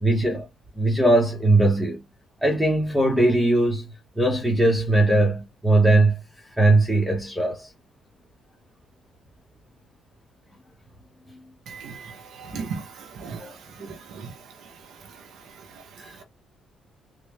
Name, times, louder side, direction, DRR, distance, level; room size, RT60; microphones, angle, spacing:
voice 1, 0.0-0.5 0.8-2.0 2.4-3.9 4.2-6.1 6.6-7.7 13.4-13.5 16.0-16.1, right 2 dB, 5° right, 1.3 m, -20 dB
voice 2, 12.4-12.8 13.2-13.4 13.8-14.3, right 5 dB, 80° right, 0.9 m, -34 dB
3.7 x 2.5 x 3.2 m
cardioid pair, 90°, 0 cm